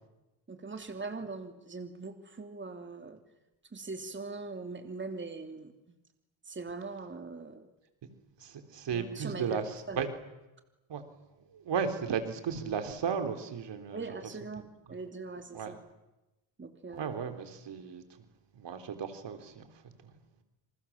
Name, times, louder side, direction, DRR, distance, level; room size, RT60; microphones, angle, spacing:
voice 1, 0.5-3.2 3.7-5.9 6.4-7.7 8.9-10.1 13.9-14.6 14.9-15.8 16.6-17.1, right 3 dB, 25° right, 6 dB, 2.9 m, -41 dB
voice 2, 8.4-10.1 10.9-11.0 11.5-14.0 14.6-14.7 15.5-15.7 16.9-18.0 18.5-19.7 20.0-20.1, right 6 dB, 60° right, 8 dB, 3.8 m, -35 dB
29.0 x 27.0 x 7.4 m, 1.0 s
cardioid pair, 100°, 46 cm